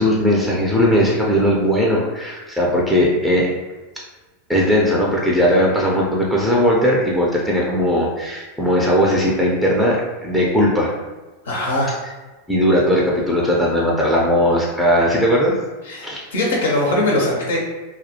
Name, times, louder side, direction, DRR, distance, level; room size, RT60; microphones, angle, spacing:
voice 1, 0.0-3.5 4.5-11.0 12.5-15.5 16.0-16.2, equal, 5° left, -4 dB, 0.5 m, -18 dB
voice 2, 11.4-11.9 15.9-17.6, left 1 dB, 85° left, -2 dB, 0.6 m, -21 dB
2.2 x 2.0 x 2.7 m, 1.2 s
hypercardioid pair, 100°, 0 cm